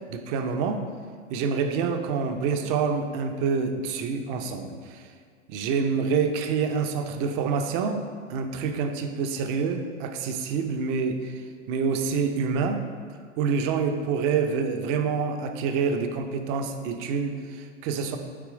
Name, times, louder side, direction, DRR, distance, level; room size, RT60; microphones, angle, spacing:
voice 1, 0.1-0.8 1.3-5.0 5.5-8.0 8.3-11.3 11.7-12.8 13.4-18.2, right 5 dB, 30° right, 6 dB, 0.5 m, -27 dB
8.4 x 3.0 x 4.8 m, 2.1 s
hypercardioid pair, 110°, 38 cm